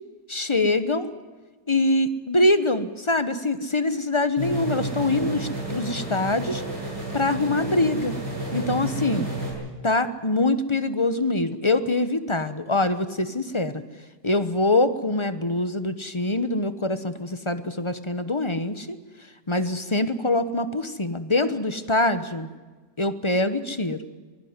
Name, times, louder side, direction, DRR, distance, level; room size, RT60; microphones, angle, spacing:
voice 1, 0.3-1.1 1.7-6.6 7.1-8.1 8.5-9.3 9.8-13.8 14.2-19.0 19.5-22.5 23.0-24.0, left 2 dB, 20° left, 11 dB, 0.8 m, -24 dB
sound 1, 4.4-9.5, right 2 dB, 85° right, 8.0 m, -31 dB
23.0 x 16.0 x 9.6 m, 1.4 s
omnidirectional pair, 1.9 m